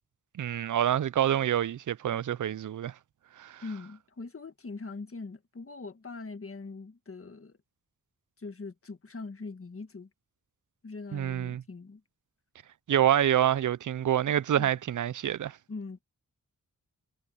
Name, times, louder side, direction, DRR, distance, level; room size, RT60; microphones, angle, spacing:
voice 1, 0.4-2.9 3.4-3.6 11.1-11.6 12.9-15.6, right 10 dB, 65° right, 0.5 m, -27 dB
voice 2, 3.6-7.6 8.4-10.1 10.8-12.0 14.5-14.7 15.7-16.0, left 3 dB, 40° left, 1.7 m, -42 dB
wide cardioid pair, 100°, 34 cm